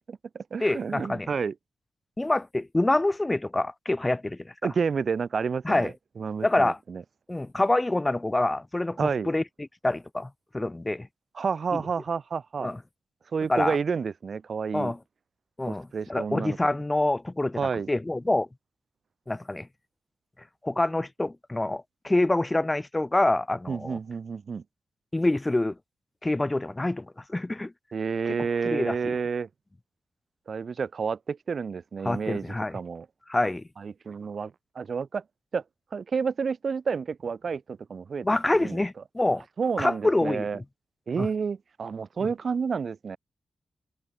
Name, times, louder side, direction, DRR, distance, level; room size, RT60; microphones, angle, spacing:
voice 1, 0.1-1.5 4.6-5.9 6.2-7.0 9.0-9.3 11.4-12.7 13.3-14.9 15.7-16.6 17.6-17.9 23.7-24.6 27.9-29.5 30.5-32.4 32.7-33.1 33.8-35.2 35.5-35.6 35.9-38.3 38.6-38.8 39.6-40.6 41.1-43.2, right 5 dB, 45° right, 0.5 m, -30 dB
voice 2, 0.6-1.3 2.2-4.5 5.6-5.9 6.4-6.8 7.3-11.1 11.7-11.8 12.6-12.8 13.5-13.8 14.7-15.0 15.6-18.5 19.3-19.7 20.6-24.0 25.1-25.8 26.2-27.7 28.3-29.2 32.0-32.8 33.3-33.6 38.2-39.4 39.8-40.6 41.2-41.3 42.2-42.3, left 2 dB, 15° left, 0.4 m, -26 dB
wide cardioid pair, 160°, 0 cm